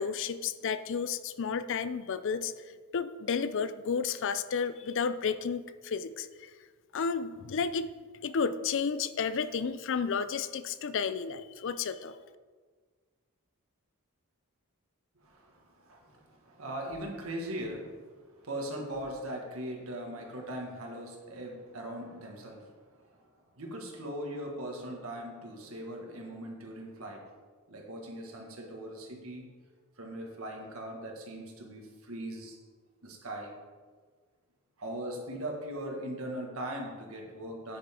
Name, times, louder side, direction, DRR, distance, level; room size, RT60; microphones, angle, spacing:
voice 1, 0.0-2.5 2.9-6.3 6.9-7.9 8.2-12.1, left 6 dB, 60° left, 13 dB, 0.4 m, -32 dB
voice 2, 15.2-23.2 23.5-27.3 27.7-29.5 30.0-32.6 33.0-33.5 34.8-37.8, right 1 dB, 70° right, 1 dB, 1.9 m, -40 dB
9.2 x 9.0 x 3.8 m, 1.5 s
head